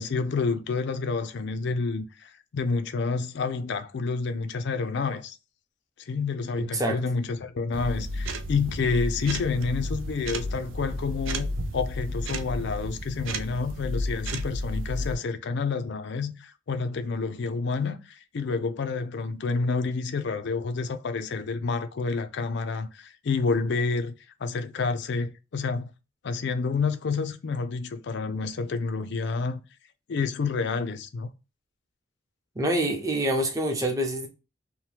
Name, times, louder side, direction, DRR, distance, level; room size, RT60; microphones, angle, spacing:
voice 1, 0.0-5.4 6.1-24.2 24.4-25.9 26.2-29.6 30.1-31.3, left 4 dB, 60° left, 0.4 m, -29 dB
voice 2, 6.6-7.0 32.5-34.3, right 1 dB, 15° right, 0.6 m, -26 dB
sound 1, 7.7-15.2, equal, 70° right, 0.5 m, -32 dB
2.8 x 2.1 x 3.2 m
head